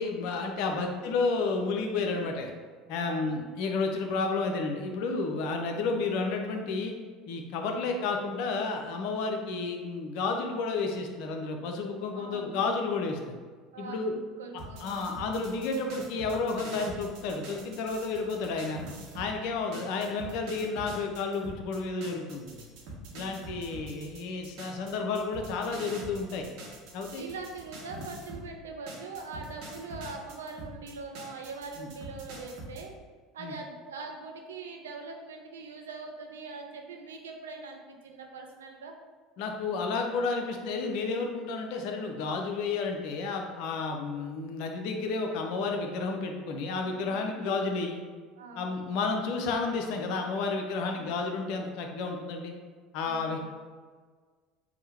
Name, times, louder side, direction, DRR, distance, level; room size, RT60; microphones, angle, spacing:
voice 1, 0.0-2.5 2.9-6.9 7.3-13.4 13.8-14.1 14.8-18.8 19.1-22.6 23.1-26.5 26.9-27.2 31.8-31.9 33.4-33.5 39.4-48.0 48.6-52.5 52.9-53.4, left 4 dB, 55° left, 3 dB, 0.5 m, -31 dB
voice 2, 3.0-3.5 5.9-6.0 7.6-7.8 12.1-12.7 13.7-15.0 19.4-19.8 23.1-23.4 27.1-32.9 33.3-38.9 46.6-47.4 48.4-49.2 50.8-51.1 53.0-53.3, right 4 dB, 75° right, 2 dB, 0.4 m, -43 dB
sound 1, 14.6-19.3 19.7-28.5 28.9-32.8, right 1 dB, 55° right, 0.8 m, -44 dB
3.6 x 2.1 x 4.2 m, 1.5 s
figure-of-eight pair, 65°, 0 cm